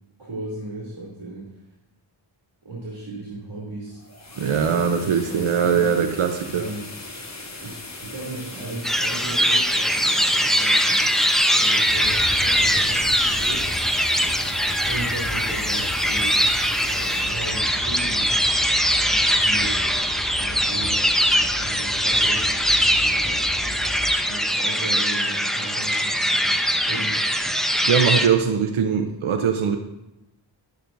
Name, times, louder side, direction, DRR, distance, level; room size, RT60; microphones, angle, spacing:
voice 1, 0.2-1.6 2.6-4.0 4.3-6.1 6.5-6.9 7.6-11.1 11.4-13.7 14.9-16.4 16.9-18.4 19.0-19.9 20.3-23.5 24.3-27.2 28.9-29.0, right 2 dB, 65° right, -5 dB, 2.8 m, -36 dB
sound 1, 3.9-18.8, left 2 dB, 35° left, 1.4 m, -39 dB
voice 2, 4.4-6.6 27.9-29.8, right 7 dB, 90° right, 5 dB, 0.8 m, -21 dB
sound 2, 8.8-28.3, equal, ahead, 0.7 m, -21 dB
sound 3, 11.8-24.1, left 1 dB, 70° left, 3.7 m, -36 dB
11.5 x 11.5 x 2.6 m, 0.91 s
wide cardioid pair, 100°, 47 cm